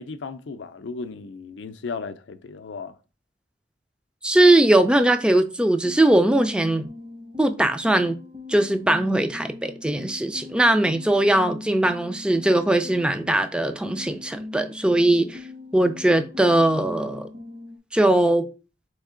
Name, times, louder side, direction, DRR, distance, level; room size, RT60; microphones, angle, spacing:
voice 1, 0.0-2.9, left 4 dB, 80° left, 0.4 m, -35 dB
voice 2, 4.2-6.8 7.4-8.2 8.5-15.4 15.7-17.3 17.9-18.5, right 1 dB, 5° right, 0.3 m, -20 dB
After (no drums version), 5.8-13.5 13.8-17.8, left 3 dB, 50° right, 1.0 m, -41 dB
3.6 x 3.2 x 3.7 m
head